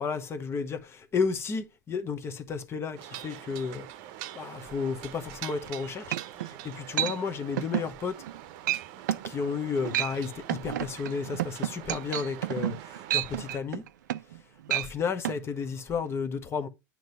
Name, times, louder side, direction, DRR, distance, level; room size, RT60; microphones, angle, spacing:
voice 1, 0.0-3.9 4.3-6.2 6.6-8.1 9.2-12.7 13.1-13.8 14.7-16.7, left 5 dB, 25° left, 1.1 m, -32 dB
sound 1, 3.0-13.6, right 13 dB, 50° right, 0.8 m, -45 dB
sound 2, 5.7-5.8 6.1-6.5 7.0-7.2 7.6-7.9 8.2-8.4 8.7-8.8 9.1-9.3 9.8-10.2 10.5-14.4 14.7-14.9 15.2-15.4, right 13 dB, 65° right, 0.4 m, -30 dB
9.1 x 3.1 x 5.4 m
hypercardioid pair, 95°, 10 cm